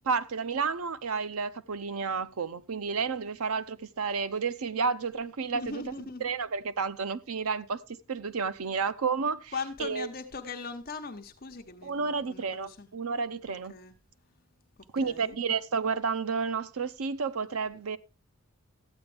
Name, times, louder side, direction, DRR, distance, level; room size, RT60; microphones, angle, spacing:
voice 1, 0.0-10.1 11.8-13.7 14.9-18.0, right 5 dB, 85° right, 0.6 m, -31 dB
voice 2, 5.5-6.3 9.5-12.9 13.7-13.9 15.0-15.3, left 4 dB, 40° left, 1.0 m, -39 dB
13.5 x 8.8 x 3.4 m
head